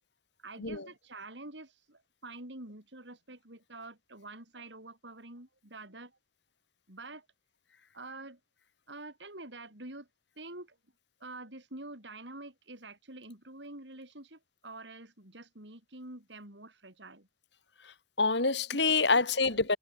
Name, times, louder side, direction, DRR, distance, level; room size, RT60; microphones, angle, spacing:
voice 1, 0.4-6.1 6.9-7.2 7.9-8.4 8.9-10.1 10.4-10.8 11.2-17.3 18.7-18.8 19.1-19.2 19.5-19.6, right 2 dB, 75° right, 6.1 m, -47 dB
voice 2, 17.8-19.8, left 4 dB, 70° left, 4.0 m, -27 dB
head